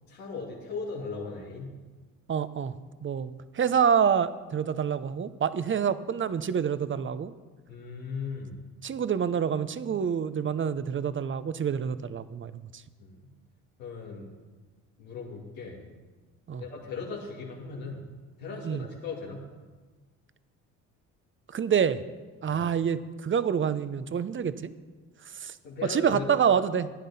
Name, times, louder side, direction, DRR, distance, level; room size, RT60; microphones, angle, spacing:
voice 1, 0.1-1.7 7.7-8.6 13.0-13.3 13.8-14.3 15.0-15.8 16.6-18.0 18.4-19.4 22.5-22.6 25.6-26.3, left 4 dB, 90° left, -6 dB, 2.3 m, -38 dB
voice 2, 2.3-2.7 3.0-7.3 8.8-12.5 16.5-16.6 18.6-18.8 21.5-22.0 22.4-24.7 25.3-25.6 25.9-26.9, right 7 dB, 30° right, 14 dB, 0.7 m, -27 dB
15.0 x 10.0 x 4.1 m, 1.3 s
hypercardioid pair, 55°, 39 cm